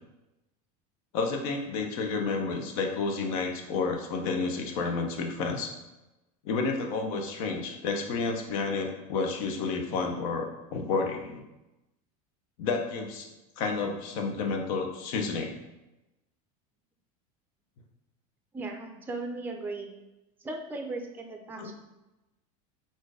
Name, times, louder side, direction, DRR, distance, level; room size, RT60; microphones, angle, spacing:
voice 1, 1.1-5.7 6.4-11.4 12.6-13.3 13.6-15.5 21.6-21.7, left 4 dB, 70° left, 3 dB, 0.8 m, -30 dB
voice 2, 18.5-19.9 20.4-21.7, right 2 dB, 10° right, 4 dB, 0.5 m, -37 dB
4.3 x 2.6 x 4.8 m, 1.0 s
supercardioid pair, 150°, 18 cm